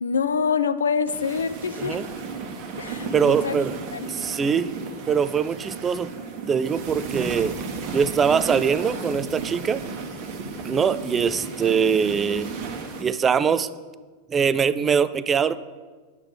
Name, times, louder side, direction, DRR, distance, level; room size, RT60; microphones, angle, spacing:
voice 1, 0.0-2.0 2.8-3.6 3.9-4.1, left 6 dB, 70° left, 13 dB, 0.5 m, -25 dB
sound 1, 1.1-13.0, right 4 dB, 40° right, 1.3 m, -34 dB
voice 2, 3.1-3.8 4.1-4.7 5.1-6.1 6.5-7.6 7.9-9.8 10.6-12.5 13.0-13.7 14.3-15.6, right 6 dB, 20° right, 15 dB, 0.4 m, -22 dB
9.7 x 8.2 x 4.8 m, 1.4 s
figure-of-eight pair, 90°, 0 cm